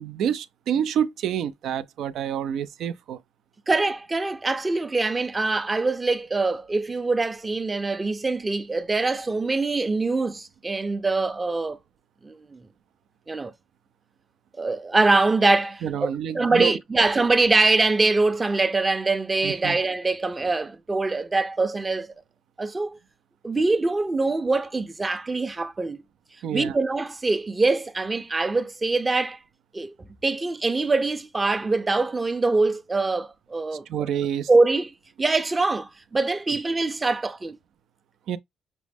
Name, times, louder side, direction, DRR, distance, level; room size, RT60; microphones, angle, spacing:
voice 1, 0.0-3.2 15.8-16.7 19.4-19.8 26.4-26.8 33.9-34.5 38.3-38.4, right 9 dB, 80° right, 0.4 m, -28 dB
voice 2, 3.7-11.8 12.2-12.6 13.3-13.5 14.6-22.1 22.6-23.0 23.4-26.0 26.5-29.4 29.7-29.9 30.2-33.8 34.5-34.9 35.2-37.6, right 3 dB, 25° right, 0.5 m, -23 dB
6.0 x 2.1 x 3.4 m
cardioid pair, 90°, 0 cm